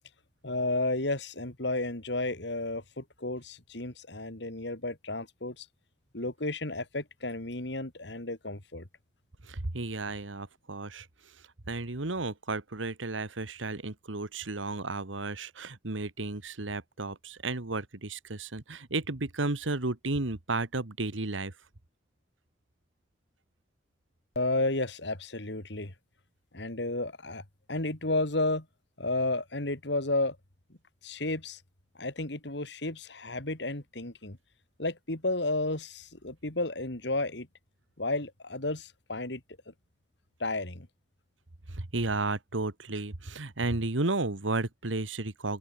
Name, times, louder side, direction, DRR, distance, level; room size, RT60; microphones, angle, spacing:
voice 1, 0.4-5.7 6.1-8.9 24.3-25.9 26.5-27.4 27.7-28.7 29.0-30.4 31.0-31.6 32.0-34.4 34.8-37.5 38.0-39.4 39.7-39.8 40.4-40.9, left 2 dB, 65° left, 3.0 m, -32 dB
voice 2, 9.4-11.4 11.7-21.5 41.7-45.6, right 2 dB, 90° right, 1.7 m, -33 dB
open air
head